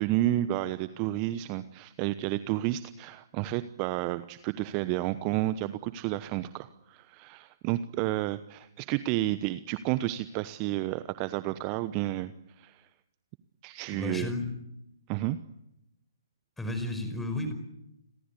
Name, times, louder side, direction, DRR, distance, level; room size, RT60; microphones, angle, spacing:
voice 1, 0.0-12.3 12.6-12.9 13.6-14.3 15.1-15.4, right 15 dB, 25° right, 14 dB, 1.0 m, -31 dB
voice 2, 13.9-14.5 16.6-17.5, left 2 dB, 5° left, 8 dB, 5.0 m, -32 dB
30.0 x 21.5 x 8.4 m, 0.84 s
figure-of-eight pair, 130°, 2 cm